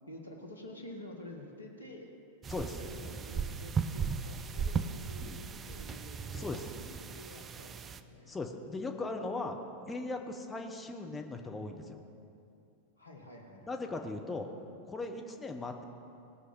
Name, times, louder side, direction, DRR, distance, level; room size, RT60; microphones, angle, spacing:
voice 1, 0.1-2.1 2.8-6.5 6.8-8.3 13.0-13.8, left 1 dB, 80° left, 2 dB, 1.5 m, -49 dB
sound 1, 2.4-8.0, right 6 dB, 25° right, 0.5 m, -37 dB
voice 2, 2.5-2.8 5.2-5.4 6.3-6.7 8.3-9.6 9.9-12.0 13.7-14.5 14.8-15.8, left 3 dB, 15° left, 4 dB, 0.9 m, -38 dB
18.5 x 6.3 x 5.4 m, 2.6 s
figure-of-eight pair, 90°, 0 cm